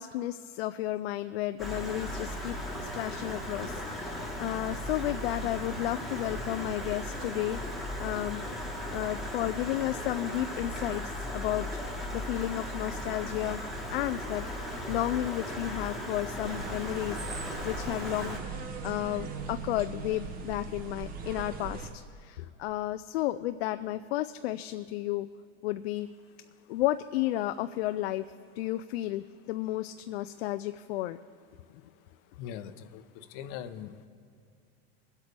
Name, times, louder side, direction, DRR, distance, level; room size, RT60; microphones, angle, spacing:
voice 1, 0.0-8.4 8.9-11.7 12.1-14.4 14.9-17.2 17.6-25.3 25.6-26.1 26.7-28.3 28.6-31.2, left 14 dB, 80° left, 10 dB, 0.5 m, -33 dB
Stream, 1.6-18.4, left 1 dB, ahead, 1.3 m, -37 dB
sound 1, 16.4-21.9, right 4 dB, 30° right, 0.9 m, -39 dB
voice 2, 32.4-34.1, left 9 dB, 50° left, 10 dB, 0.7 m, -41 dB
22.0 x 8.2 x 3.4 m, 2.4 s
supercardioid pair, 150°, 30 cm